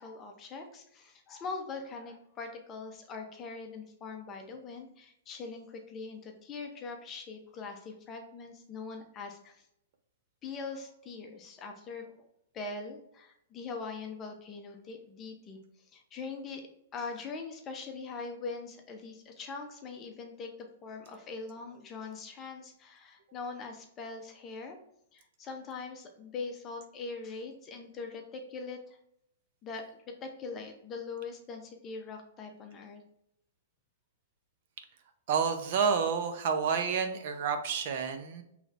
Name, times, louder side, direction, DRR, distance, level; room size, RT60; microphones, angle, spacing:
voice 1, 0.0-9.6 10.4-12.3 12.5-15.6 15.9-16.6 16.9-20.5 20.8-24.8 25.1-29.0 29.6-33.0, left 4 dB, 25° left, 4 dB, 0.7 m, -42 dB
voice 2, 35.3-38.4, right 6 dB, 55° right, 7 dB, 0.6 m, -29 dB
5.0 x 3.2 x 2.5 m, 0.75 s
hypercardioid pair, 145°, 0 cm